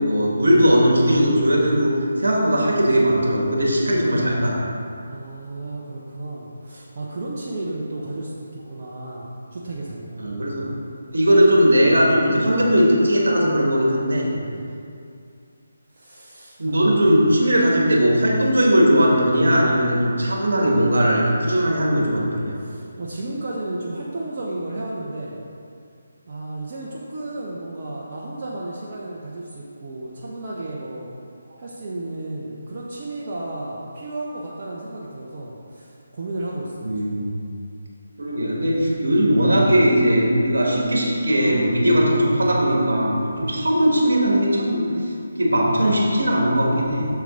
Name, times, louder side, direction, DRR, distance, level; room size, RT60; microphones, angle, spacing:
voice 1, 0.0-1.9 2.2-4.6 10.2-10.6 11.1-14.3 16.6-22.6 36.8-37.4 38.2-44.9 45.4-47.1, equal, 65° right, -2 dB, 1.8 m, -18 dB
voice 2, 5.1-10.4 14.5-14.8 15.9-17.3 22.5-25.4 26.3-31.1 31.6-37.2 43.4-43.7, right 2 dB, 40° right, -5 dB, 0.9 m, -33 dB
7.9 x 6.8 x 3.8 m, 2.4 s
figure-of-eight pair, 150°, 0 cm